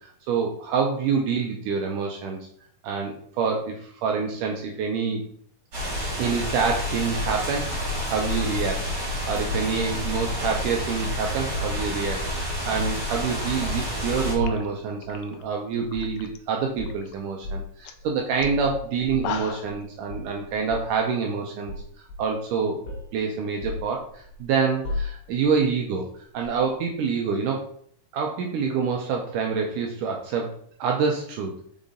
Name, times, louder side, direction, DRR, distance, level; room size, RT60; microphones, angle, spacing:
voice 1, 0.3-2.4 2.8-5.2 6.2-7.8 8.1-21.7 22.2-22.8 23.1-26.1 26.3-27.6 28.1-30.5 30.8-31.5, right 5 dB, 75° right, 1 dB, 2.1 m, -27 dB
sound 1, 5.7-14.3, equal, 30° right, 2.8 m, -29 dB
sound 2, 9.5-10.5 11.5-12.3 12.6-13.2 13.6-13.9 14.4-14.8 15.9-16.2 16.8-17.0 17.4-17.7 18.4-19.8 20.1-21.0 21.7-22.5 22.9-23.2 23.6-24.4 24.8-25.5 26.4-26.6, left 2 dB, 60° left, 2.3 m, -34 dB
sound 3, 14.1-14.2 14.4-16.4 16.7-17.2 17.5-17.6 17.8-18.0 18.4-18.5 19.0-19.8, left 8 dB, 85° left, 1.8 m, -37 dB
5.5 x 5.1 x 3.8 m, 0.62 s
omnidirectional pair, 4.1 m